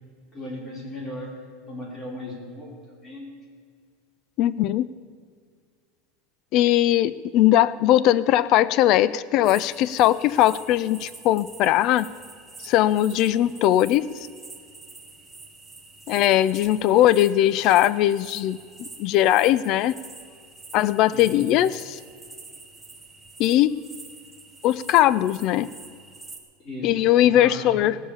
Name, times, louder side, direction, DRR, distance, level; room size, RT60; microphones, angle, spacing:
voice 1, 0.3-3.3 21.1-21.5 26.6-27.8, left 1 dB, 25° left, -2 dB, 4.0 m, -37 dB
voice 2, 4.4-4.9 6.5-12.1 12.6-14.1 16.1-19.9 20.7-22.0 23.4-23.8 24.6-25.7 26.8-28.0, left 13 dB, 40° left, 18 dB, 0.4 m, -20 dB
sound 1, 9.4-26.4, right 3 dB, 5° right, 1.4 m, -46 dB
18.0 x 7.2 x 8.4 m, 2.1 s
supercardioid pair, 165°, 0 cm